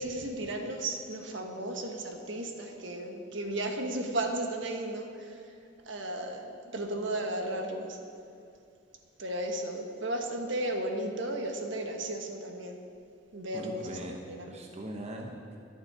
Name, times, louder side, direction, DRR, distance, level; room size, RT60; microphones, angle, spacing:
voice 1, 0.0-5.4 5.9-8.0 9.2-12.8 13.3-13.9 14.3-14.4, right 1 dB, 65° right, 3 dB, 1.4 m, -34 dB
voice 2, 13.5-15.6, right 1 dB, 35° right, 1 dB, 1.0 m, -41 dB
21.5 x 7.3 x 4.9 m, 2.6 s
head